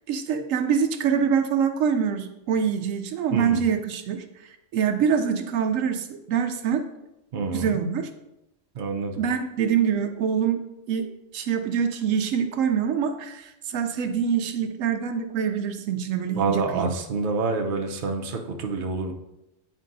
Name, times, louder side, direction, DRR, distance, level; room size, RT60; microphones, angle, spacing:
voice 1, 0.1-6.8 7.5-8.1 9.2-10.6 10.9-11.1 11.3-16.9, right 7 dB, 80° right, 6 dB, 1.0 m, -25 dB
voice 2, 3.3-3.6 7.3-7.8 8.7-9.2 16.4-19.1, right 4 dB, 50° right, 3 dB, 0.8 m, -27 dB
9.1 x 4.5 x 2.6 m, 0.88 s
omnidirectional pair, 1.4 m